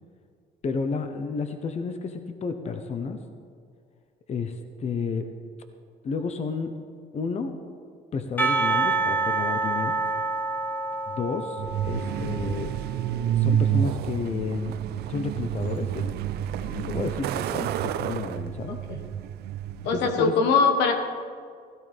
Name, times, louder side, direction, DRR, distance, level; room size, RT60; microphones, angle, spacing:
voice 1, 0.6-3.2 4.3-5.3 6.0-6.7 7.1-7.5 8.1-10.0 11.1-12.7 13.4-14.8 15.1-16.2 16.6-18.8 19.8-20.3, left 5 dB, 40° left, 7 dB, 1.0 m, -31 dB
Percussion / Church bell, 8.4-12.9, right 3 dB, 10° left, 1.4 m, -27 dB
Truck, 11.6-20.3, right 10 dB, 70° right, 0.5 m, -29 dB
voice 2, 19.8-20.9, left 4 dB, 85° left, 5 dB, 1.6 m, -21 dB
16.0 x 15.0 x 3.5 m, 2.1 s
cardioid pair, 110°, 17 cm